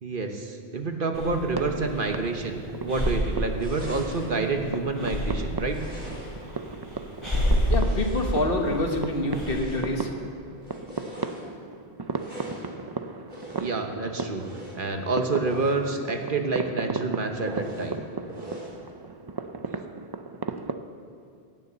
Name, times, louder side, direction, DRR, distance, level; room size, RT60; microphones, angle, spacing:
voice 1, 0.0-5.8 13.6-14.4 14.7-18.0, right 3 dB, 55° right, 4 dB, 1.3 m, -28 dB
Breathing, 1.1-9.6, equal, 25° left, 2.9 m, -30 dB
sound 1, 1.3-20.7, right 4 dB, 35° right, 0.4 m, -36 dB
sound 2, 3.6-4.4 5.6-6.5 7.0-8.7 9.3-10.0 10.6-11.5 12.1-12.7 13.3-13.8 14.3-14.8 15.4-15.8 16.2-16.3 16.6-16.7 17.5-17.9 18.3-18.8, equal, 10° right, 4.3 m, -42 dB
voice 2, 7.7-10.1, left 2 dB, 60° left, 3 dB, 1.6 m, -26 dB
16.5 x 6.8 x 8.6 m, 2.3 s
omnidirectional pair, 1.1 m